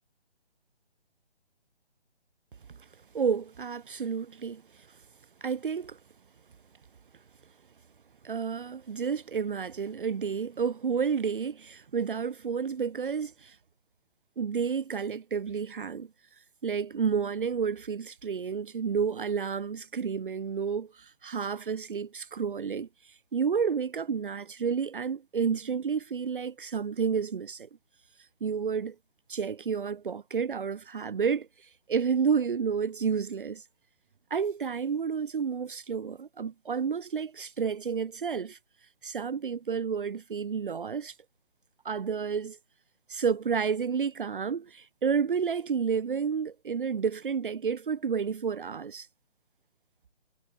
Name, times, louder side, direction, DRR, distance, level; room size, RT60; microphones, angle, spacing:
voice 1, 3.1-4.6 5.4-6.0 8.2-13.6 14.4-16.1 16.6-27.7 28.4-28.9 29.3-33.6 34.3-38.6 39.0-41.1 41.8-42.6 43.1-49.1, right 6 dB, 50° right, 1.6 m, -30 dB
figure-of-eight pair, 160°, 32 cm